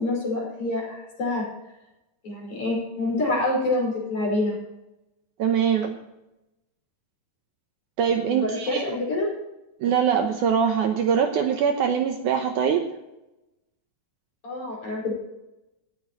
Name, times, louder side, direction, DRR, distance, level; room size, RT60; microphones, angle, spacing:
voice 1, 0.0-1.4 2.2-4.6 8.3-9.3 14.4-15.2, left 2 dB, 55° left, -4 dB, 6.7 m, -26 dB
voice 2, 5.4-6.0 8.0-8.8 9.8-12.9, right 7 dB, 70° right, 5 dB, 2.0 m, -23 dB
17.5 x 13.5 x 3.1 m, 0.94 s
omnidirectional pair, 4.2 m